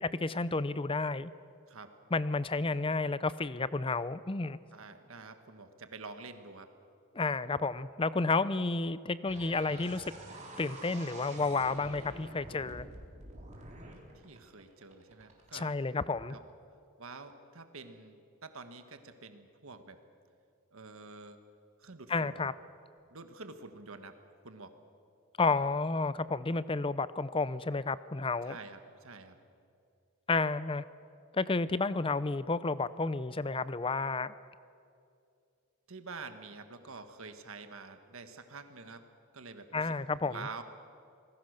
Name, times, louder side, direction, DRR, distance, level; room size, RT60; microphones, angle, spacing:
voice 1, 0.0-1.3 2.1-4.6 7.1-10.0 10.6-12.9 15.5-16.3 22.1-22.5 25.4-28.6 30.3-30.8 31.3-34.3 39.7-40.5, left 3 dB, 25° left, 16 dB, 0.5 m, -31 dB
voice 2, 4.7-6.7 8.3-8.4 14.1-15.7 16.3-16.4 17.0-20.0 20.7-21.4 21.8-22.5 23.1-24.2 24.4-24.7 28.5-29.4 35.9-39.0 39.3-39.9 40.2-40.6, right 4 dB, 65° right, 8 dB, 1.5 m, -47 dB
sound 1, 9.3-15.6, right 1 dB, 30° right, 3.8 m, -48 dB
27.0 x 20.0 x 6.6 m, 2.5 s
head